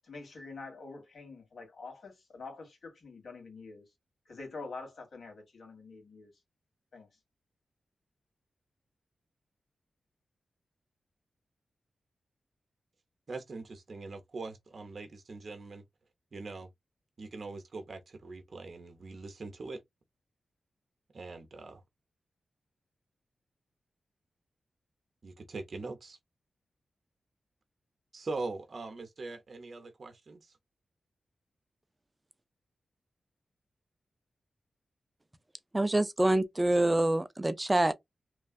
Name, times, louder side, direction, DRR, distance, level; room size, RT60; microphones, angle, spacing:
voice 1, 0.0-3.8 4.2-6.3 6.9-7.1, left 3 dB, 75° left, 1.6 m, -46 dB
voice 2, 13.3-15.8 16.3-16.7 17.2-19.8 21.1-21.8 25.2-26.2 28.1-30.6 36.9-37.0, right 3 dB, 55° right, 0.7 m, -42 dB
voice 3, 35.7-37.9, right 1 dB, 20° right, 0.4 m, -26 dB
3.1 x 2.3 x 2.4 m
cardioid pair, 70°, 0 cm